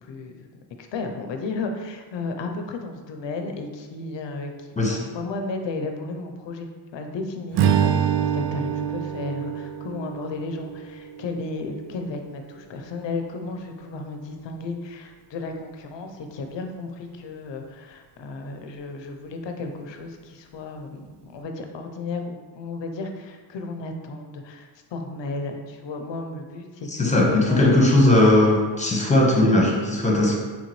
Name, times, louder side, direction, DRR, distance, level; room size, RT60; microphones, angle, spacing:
voice 1, 0.0-0.5 0.8-27.8, left 3 dB, 60° left, 4 dB, 0.7 m, -34 dB
Strum, 7.5-12.0, right 9 dB, 60° right, 0.5 m, -26 dB
voice 2, 26.9-30.4, left 1 dB, 15° left, -1 dB, 1.1 m, -18 dB
3.8 x 3.8 x 3.1 m, 1.4 s
cardioid pair, 70°, 49 cm